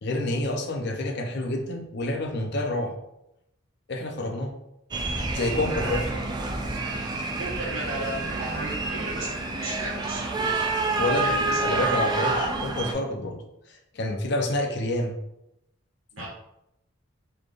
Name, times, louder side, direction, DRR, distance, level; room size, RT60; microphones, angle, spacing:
voice 1, 0.0-3.0 3.9-4.5 5.3-6.0 11.0-11.3 11.6-15.2 16.2-16.3, left 1 dB, 55° left, 3 dB, 0.6 m, -28 dB
sound 1, 4.9-12.9, right 3 dB, 20° right, 0.4 m, -28 dB
voice 2, 5.7-6.0 7.4-10.6 11.2-11.8 16.1-16.3, right 1 dB, 80° right, -4 dB, 1.5 m, -35 dB
4.1 x 3.2 x 2.4 m, 0.84 s
head